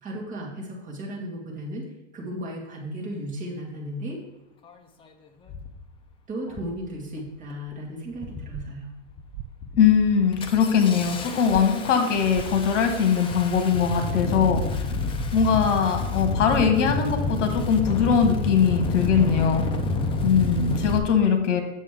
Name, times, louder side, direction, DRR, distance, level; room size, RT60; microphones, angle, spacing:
voice 1, 0.0-1.9 2.1-4.2 6.3-8.9, right 1 dB, 20° right, -2 dB, 2.1 m, -35 dB
Engine starting, 4.7-4.8 5.5-5.8 6.5-6.8 7.2-7.7 8.1-8.7 9.1-9.3 9.6-21.0, left 3 dB, 15° left, 0.6 m, -29 dB
sound 1, 8.5-8.6 9.3-9.5 11.5-11.6 12.3-12.5 14.5-14.6 15.3-15.5, right 14 dB, 45° right, 0.4 m, -35 dB
voice 2, 9.8-14.6 15.3-19.6 20.2-21.6, left 7 dB, 70° left, 5 dB, 1.7 m, -21 dB
8.4 x 6.8 x 3.7 m, 1.0 s
hypercardioid pair, 135°, 37 cm